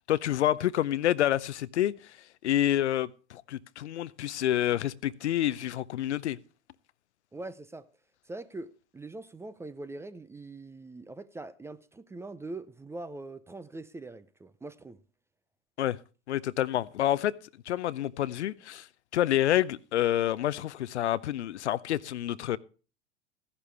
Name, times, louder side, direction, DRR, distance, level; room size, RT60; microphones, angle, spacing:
voice 1, 0.1-2.2 2.4-6.4 15.8-16.0 16.3-17.4 17.7-18.9 19.1-22.6, left 12 dB, 70° left, 0.6 m, -28 dB
voice 2, 7.3-7.9 8.3-15.0, right 2 dB, 10° right, 0.5 m, -42 dB
15.0 x 11.0 x 3.3 m
figure-of-eight pair, 90°, 35 cm